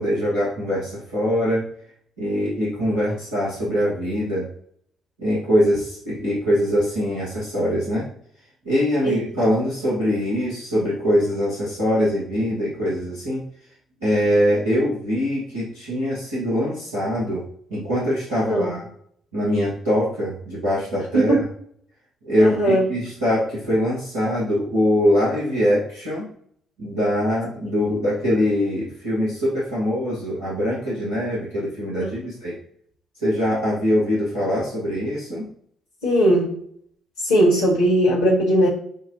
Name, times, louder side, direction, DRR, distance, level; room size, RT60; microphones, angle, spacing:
voice 1, 0.0-1.7 2.2-4.5 5.2-8.1 8.6-13.4 14.0-17.4 17.7-18.8 19.3-21.4 22.2-26.3 26.8-32.6 33.2-35.5, equal, 85° right, -10 dB, 1.4 m, -23 dB
voice 2, 22.4-22.8 32.0-32.2 36.0-36.5 37.2-38.7, right 1 dB, 75° left, -6 dB, 1.5 m, -18 dB
7.0 x 2.3 x 2.8 m, 0.63 s
figure-of-eight pair, 45°, 0 cm